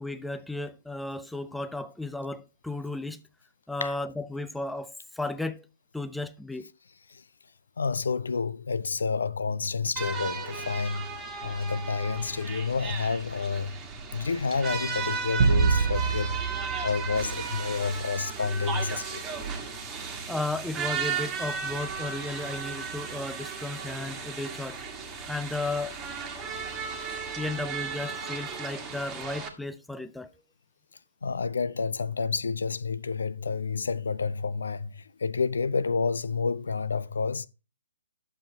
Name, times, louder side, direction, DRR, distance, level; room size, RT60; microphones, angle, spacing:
voice 1, 0.0-3.2 3.7-5.7 5.9-6.7 20.3-24.8 25.3-26.0 27.3-30.3, left 2 dB, ahead, 0.4 m, -34 dB
voice 2, 7.8-13.8 14.1-16.4 16.8-19.2 26.9-27.1 31.2-37.5, left 5 dB, 65° left, 0.5 m, -29 dB
sound 1, 10.0-29.5, right 5 dB, 15° right, 1.5 m, -35 dB
sound 2, 15.4-18.0, right 5 dB, 45° right, 0.9 m, -26 dB
10.5 x 7.1 x 2.8 m
figure-of-eight pair, 130°, 0 cm